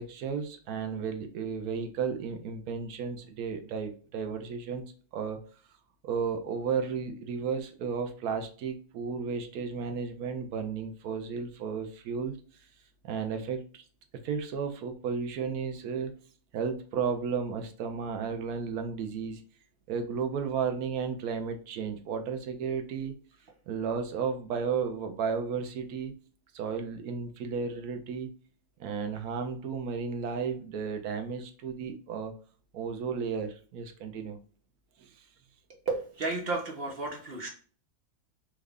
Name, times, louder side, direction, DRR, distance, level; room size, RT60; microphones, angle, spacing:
voice 1, 0.0-4.8 5.1-5.4 6.0-12.4 13.0-13.8 14.2-16.1 16.5-19.4 19.9-23.2 23.7-26.1 26.5-28.3 28.8-32.3 32.7-34.4 35.0-35.1, right 6 dB, 85° right, 5 dB, 1.1 m, -33 dB
voice 2, 35.9-37.5, right 3 dB, 50° right, 1 dB, 0.8 m, -32 dB
3.1 x 2.4 x 3.4 m, 0.42 s
omnidirectional pair, 1.5 m